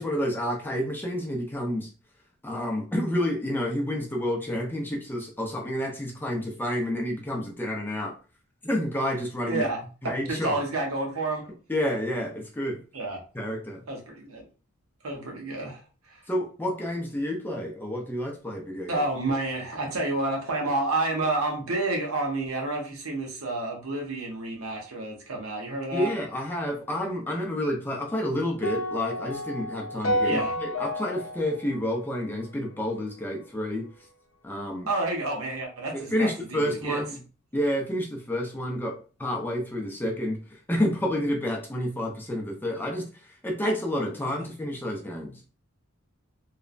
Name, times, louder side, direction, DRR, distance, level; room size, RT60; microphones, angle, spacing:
voice 1, 0.0-1.9 2.4-8.2 8.6-9.6 10.0-10.6 11.7-12.8 13.3-13.8 16.3-19.0 25.9-33.9 34.4-34.9 35.9-37.2 37.5-45.4, left 1 dB, 10° left, 1 dB, 0.5 m, -29 dB
voice 2, 9.5-9.8 10.3-11.5 12.9-13.2 13.9-14.4 15.0-15.8 16.1-16.2 18.9-26.1 30.2-30.5 34.9-37.0, right 2 dB, 85° right, 0 dB, 0.9 m, -29 dB
sound 1, 28.6-32.9, equal, 70° left, 0.6 m, -31 dB
3.1 x 2.0 x 2.4 m, 0.35 s
head